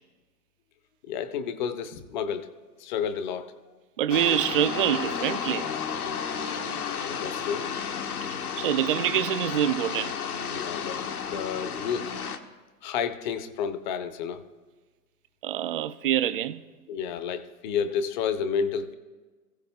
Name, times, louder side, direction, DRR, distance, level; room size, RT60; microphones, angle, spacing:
voice 1, 1.0-2.5 2.8-3.6 7.0-7.7 10.5-12.1 12.8-14.4 16.9-18.9, left 7 dB, 30° left, 0.8 m, -31 dB
voice 2, 4.0-5.7 8.6-10.2 15.4-16.6, right 11 dB, 35° right, 0.5 m, -25 dB
sound 1, 4.1-12.4, left 7 dB, 65° left, 1.3 m, -32 dB
26.5 x 15.5 x 2.2 m
figure-of-eight pair, 120°, 47 cm